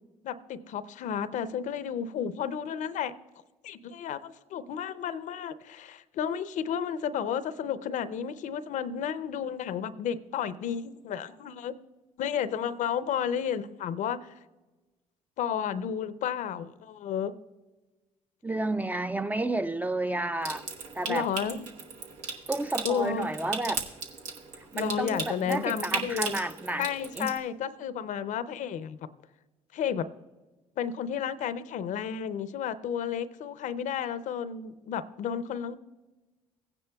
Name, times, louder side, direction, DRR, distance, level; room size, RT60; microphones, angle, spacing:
voice 1, 0.2-3.1 3.6-11.7 12.2-14.3 15.4-17.3 21.1-21.7 22.8-23.3 24.7-26.3 26.8-29.0 29.7-30.1 30.8-35.8, left 8 dB, 65° left, 0.5 m, -32 dB
voice 2, 18.4-20.7 20.9-21.3 22.5-23.8 24.7-26.9 27.2-27.4, right 2 dB, 10° right, 0.4 m, -31 dB
Water tap faucet / Sink (filling or washing) / Trickle dribble, 20.4-27.4, right 4 dB, 85° right, 1.1 m, -37 dB
15.5 x 9.7 x 2.3 m
supercardioid pair, 65°, 14 cm